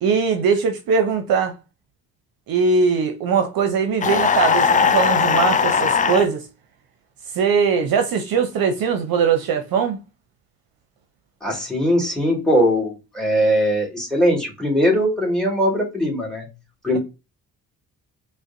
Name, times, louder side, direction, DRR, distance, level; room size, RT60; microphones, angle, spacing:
voice 1, 0.0-1.6 2.5-6.4 7.3-10.0, right 5 dB, 60° right, 0.7 m, -20 dB
sound 1, 4.0-6.3, left 6 dB, 20° left, 0.4 m, -18 dB
voice 2, 11.4-16.5 16.8-17.0, equal, ahead, 2.0 m, -20 dB
4.8 x 2.2 x 2.6 m
hypercardioid pair, 55°, 41 cm